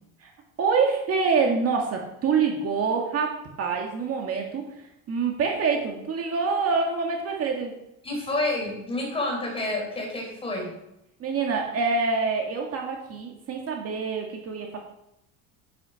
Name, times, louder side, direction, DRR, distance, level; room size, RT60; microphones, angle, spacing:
voice 1, 0.6-7.7 11.2-14.8, right 5 dB, 40° right, 1 dB, 1.9 m, -26 dB
voice 2, 8.0-10.7, left 2 dB, 15° left, -1 dB, 4.7 m, -29 dB
10.5 x 9.4 x 6.2 m, 0.85 s
cardioid pair, 165°, 39 cm